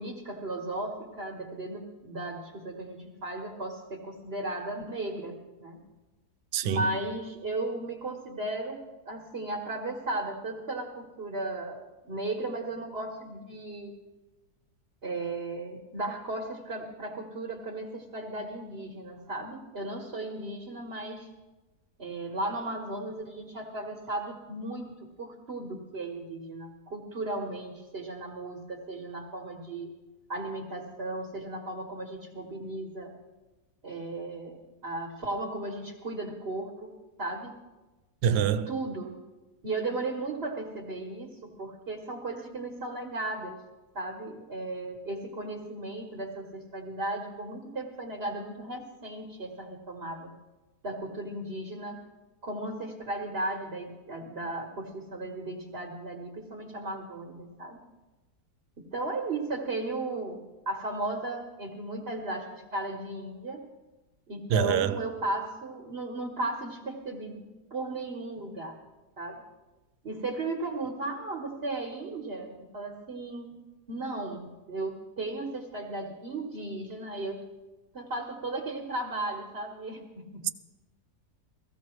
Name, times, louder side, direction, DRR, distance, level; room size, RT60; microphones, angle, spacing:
voice 1, 0.0-5.8 6.6-11.8 12.0-13.9 15.0-21.3 22.0-29.9 30.3-33.1 33.8-36.9 37.2-37.6 38.3-39.1 39.6-43.6 43.9-50.3 50.8-52.0 52.4-57.8 58.8-63.6 64.3-68.8 69.2-69.4 70.0-73.6 73.9-77.4 77.9-80.4, right 2 dB, 40° right, 1.4 m, -35 dB
voice 2, 6.5-6.9 38.2-38.7 64.5-65.0 80.4-80.5, right 9 dB, 80° right, 1.2 m, -26 dB
17.5 x 15.0 x 3.1 m
omnidirectional pair, 1.8 m